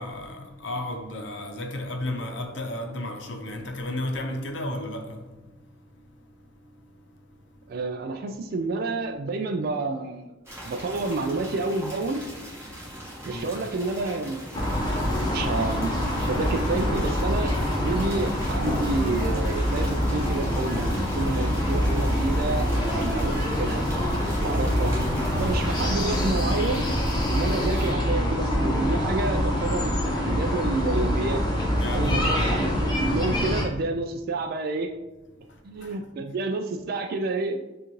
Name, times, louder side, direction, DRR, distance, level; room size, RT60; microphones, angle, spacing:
voice 1, 0.0-7.8 10.6-10.7 12.7-13.5 31.7-32.4 35.4-36.0, left 1 dB, 70° left, 0.7 m, -35 dB
voice 2, 7.7-10.3 10.6-12.2 13.2-14.4 15.2-17.5 17.8-23.8 24.4-24.9 25.3-26.8 27.3-29.9 30.3-31.4 31.9-34.9 35.6-37.6, right 3 dB, 55° right, 0.3 m, -29 dB
sound 1, 10.4-27.9, equal, 15° right, 1.3 m, -40 dB
sound 2, 14.5-33.6, equal, 20° left, 0.9 m, -25 dB
6.8 x 2.4 x 3.1 m
head